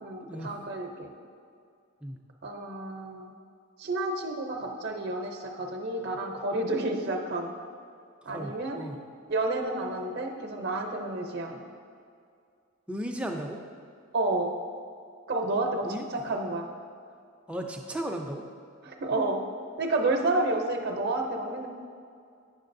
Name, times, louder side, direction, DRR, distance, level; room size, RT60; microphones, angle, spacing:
voice 1, 0.0-1.1 2.4-3.3 3.8-7.5 8.2-8.8 9.3-11.6 14.1-14.6 15.3-16.7 18.8-19.4 19.8-21.7, right 2 dB, 45° right, 3 dB, 0.6 m, -30 dB
voice 2, 8.3-9.0 12.9-13.6 15.8-16.0 17.5-18.4, right 1 dB, 5° right, 2 dB, 0.4 m, -35 dB
9.0 x 6.5 x 2.6 m, 2.3 s
head